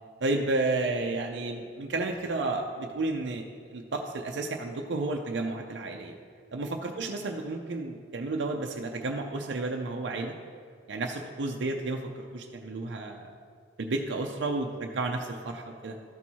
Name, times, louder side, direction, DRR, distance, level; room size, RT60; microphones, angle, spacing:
voice 1, 0.2-6.1 6.5-10.3 10.9-13.3 13.8-15.9, right 2 dB, 80° right, 2 dB, 0.5 m, -32 dB
13.5 x 4.5 x 4.2 m, 2.2 s
head